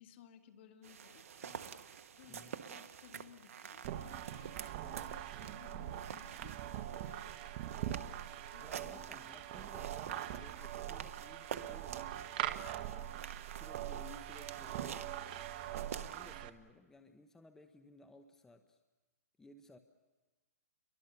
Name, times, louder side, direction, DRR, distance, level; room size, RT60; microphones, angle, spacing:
voice 1, 0.0-9.0, left 8 dB, 45° left, 6 dB, 2.3 m, -60 dB
sound 1, 0.8-16.4, right 8 dB, 65° right, 1.3 m, -49 dB
voice 2, 2.3-2.6 8.6-12.6 13.5-15.1 15.6-18.8 19.4-19.8, left 2 dB, 5° left, 7 dB, 0.9 m, -58 dB
sound 2, 3.8-16.5, right 12 dB, 40° right, 1.1 m, -42 dB
29.5 x 23.0 x 6.9 m, 1.2 s
hypercardioid pair, 145°, 8 cm